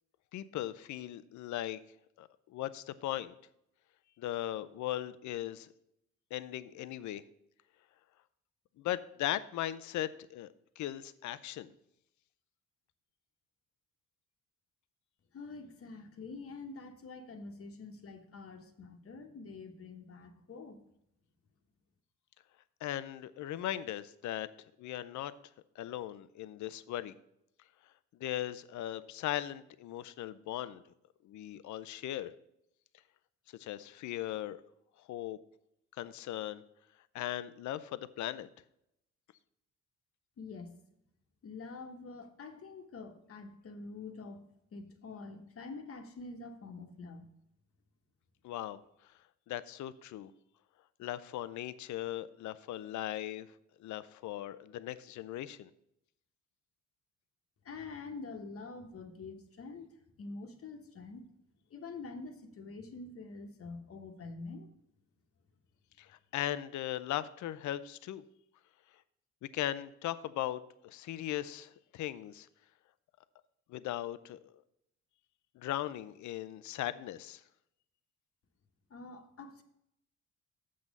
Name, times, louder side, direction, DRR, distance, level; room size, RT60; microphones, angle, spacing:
voice 1, 0.3-1.8 2.2-3.3 4.2-5.7 6.3-7.2 8.8-11.7 22.8-24.5 24.8-25.3 25.8-27.1 28.2-30.8 31.2-32.3 33.5-34.6 35.1-35.4 36.0-36.6 37.1-38.5 48.4-48.8 49.5-50.3 51.0-53.5 53.8-55.7 66.0-68.2 69.5-72.5 73.7-74.5 75.6-77.4, left 13 dB, 70° left, 15 dB, 0.6 m, -38 dB
voice 2, 15.3-20.8 40.4-40.7 41.4-44.4 44.7-47.3 57.6-59.9 60.2-61.2 61.7-64.7 78.9-79.6, left 3 dB, 50° left, 5 dB, 1.2 m, -46 dB
7.5 x 6.3 x 5.3 m, 0.79 s
cardioid pair, 90°, 30 cm